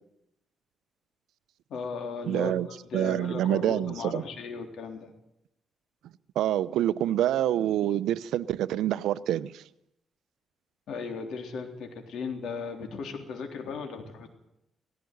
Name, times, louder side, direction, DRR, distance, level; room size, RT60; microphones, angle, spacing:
voice 1, 1.7-5.1 10.9-14.3, left 5 dB, 70° left, 3.6 m, -36 dB
voice 2, 2.3-2.7 2.9-4.2 6.4-9.6, right 12 dB, 90° right, 0.7 m, -26 dB
17.5 x 16.0 x 9.5 m
cardioid pair, 115°, 0 cm